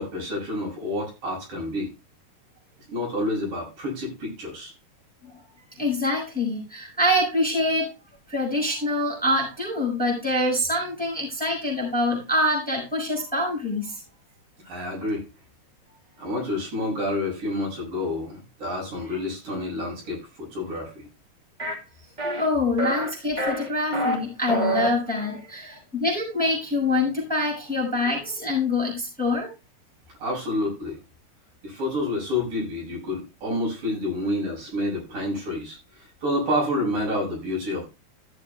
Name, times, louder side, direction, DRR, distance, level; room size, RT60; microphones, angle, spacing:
voice 1, 0.0-1.9 2.9-4.7 14.6-15.2 16.2-21.1 25.2-25.4 30.2-31.0 31.6-37.9, left 1 dB, 55° right, -2 dB, 7.9 m, -29 dB
voice 2, 5.8-7.9 8.3-14.0 22.3-29.5, left 1 dB, ahead, -3 dB, 5.6 m, -25 dB
sound 1, 21.6-21.7 22.2-22.5 22.8-23.1 23.4-24.1 24.5-24.9, right 1 dB, 15° right, 1.4 m, -26 dB
15.0 x 7.1 x 3.3 m, 0.28 s
omnidirectional pair, 4.8 m